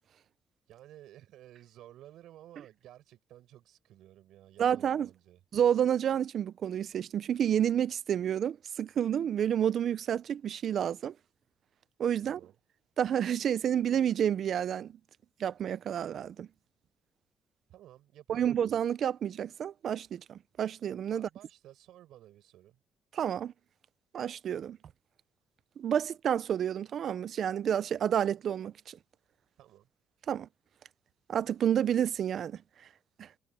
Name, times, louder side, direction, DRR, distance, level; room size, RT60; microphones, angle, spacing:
voice 1, 0.7-5.4 12.2-12.6 17.7-18.6 21.1-22.8 29.6-29.9, right 13 dB, 80° right, 6.1 m, -54 dB
voice 2, 4.6-5.1 5.5-11.1 12.0-12.4 13.0-14.9 15.4-16.5 18.3-21.3 23.1-23.5 24.1-24.8 25.8-29.0 30.3-30.5 31.3-32.6 33.2-33.3, right 9 dB, 60° right, 0.7 m, -29 dB
cardioid pair, 95°, 0 cm